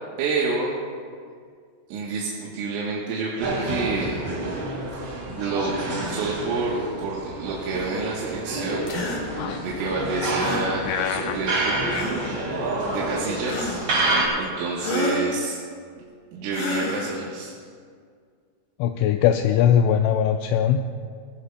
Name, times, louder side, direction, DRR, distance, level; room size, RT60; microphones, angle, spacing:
voice 1, 0.2-0.7 1.9-4.1 5.2-5.7 6.1-8.9 9.6-11.8 12.9-15.6 16.3-17.5, right 3 dB, 75° right, -4 dB, 3.6 m, -28 dB
sound 1, 3.4-14.3, right 2 dB, 45° right, 2.1 m, -28 dB
voice 2, 5.4-6.0 9.4-9.6 10.2-10.5 10.9-12.3 18.8-20.8, left 9 dB, 85° left, 5 dB, 2.7 m, -23 dB
sound 2, 8.9-9.2 10.4-10.7 11.9-12.3 13.4-14.0 14.8-15.3 16.5-17.2, left 2 dB, 70° left, 1.8 m, -30 dB
19.5 x 15.0 x 2.3 m, 2.1 s
omnidirectional pair, 5.9 m